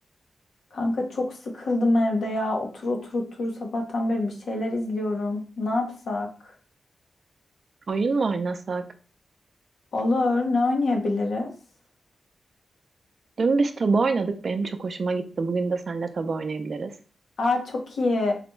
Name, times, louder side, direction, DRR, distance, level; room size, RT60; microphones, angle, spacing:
voice 1, 0.7-6.3 9.9-11.5 17.4-18.3, left 2 dB, 75° left, 2 dB, 0.8 m, -25 dB
voice 2, 7.9-8.8 13.4-16.9, right 4 dB, 50° right, 8 dB, 0.4 m, -25 dB
4.0 x 2.2 x 3.0 m, 0.38 s
wide cardioid pair, 115°, 0 cm